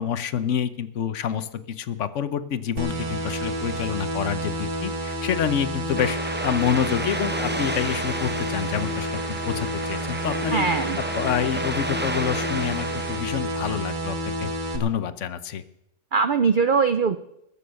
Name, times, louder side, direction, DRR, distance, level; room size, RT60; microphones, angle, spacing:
voice 1, 0.0-10.7 11.1-15.6, left 9 dB, 60° left, 13 dB, 1.0 m, -28 dB
sound 1, 2.8-14.8, right 1 dB, 35° right, 1.3 m, -30 dB
sound 2, 6.0-13.8, right 1 dB, 15° right, 0.4 m, -32 dB
voice 2, 10.5-11.0 16.1-17.2, right 5 dB, 85° right, 11 dB, 0.4 m, -21 dB
21.0 x 7.0 x 6.3 m, 0.84 s
omnidirectional pair, 1.6 m